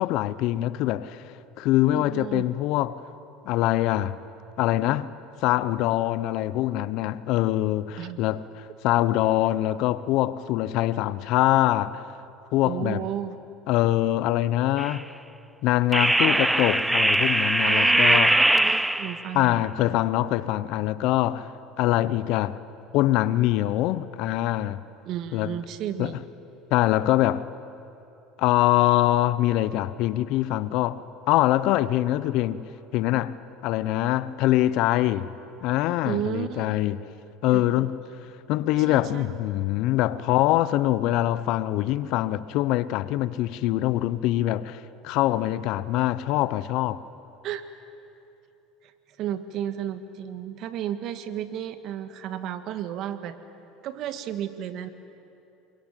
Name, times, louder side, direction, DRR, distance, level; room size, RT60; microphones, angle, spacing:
voice 1, 0.0-3.0 3.4-4.2 4.6-12.0 12.5-13.1 13.7-15.1 15.6-18.4 19.3-21.5 21.8-22.6 22.9-24.8 25.3-25.6 26.0-26.2 26.7-27.5 28.4-35.3 35.6-37.0 37.4-38.0 38.5-47.0, left 15 dB, 65° left, 0.9 m, -24 dB
voice 2, 1.9-2.5 8.0-8.2 12.6-13.4 17.7-19.9 25.1-26.3 36.0-36.8 37.5-37.9 38.7-39.3 47.4-47.6 49.2-53.4 53.8-54.9, right 10 dB, 60° right, 1.8 m, -33 dB
sound 1, 14.8-15.0 15.9-19.3, right 1 dB, 5° right, 0.6 m, -21 dB
28.0 x 22.5 x 9.2 m
supercardioid pair, 100°, 0 cm